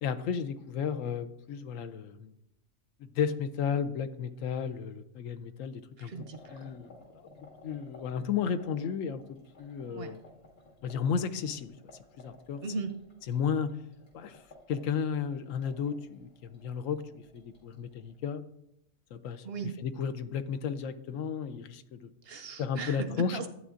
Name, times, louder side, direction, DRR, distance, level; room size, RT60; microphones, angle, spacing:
voice 1, 0.0-2.3 3.0-7.3 7.6-10.2 10.8-11.7 12.2-12.6 13.3-13.7 14.1-14.4 14.7-18.4 19.1-22.1 22.6-23.4, left 7 dB, 80° left, 11 dB, 1.0 m, -33 dB
voice 2, 6.0-6.7 9.9-10.1 12.6-13.0 19.4-19.7 22.2-23.5, right 4 dB, 60° right, 8 dB, 0.7 m, -37 dB
sound 1, 6.1-18.2, left 2 dB, 60° left, 2.5 m, -56 dB
12.5 x 8.5 x 2.5 m, 0.79 s
omnidirectional pair, 1.4 m